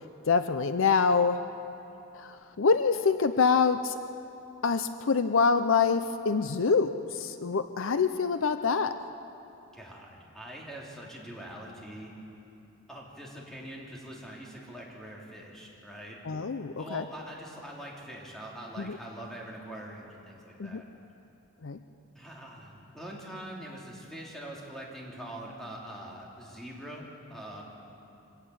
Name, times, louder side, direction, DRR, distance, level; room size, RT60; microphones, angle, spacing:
voice 1, 0.3-1.4 2.1-4.0 4.6-8.9 16.2-17.0 18.8-19.0 20.6-20.8 21.6-21.8, left 5 dB, 60° left, 10 dB, 0.6 m, -26 dB
voice 2, 9.7-12.1 12.9-16.2 16.8-20.8 22.1-27.6, right 1 dB, ahead, -4 dB, 3.0 m, -43 dB
24.5 x 17.5 x 7.0 m, 2.8 s
head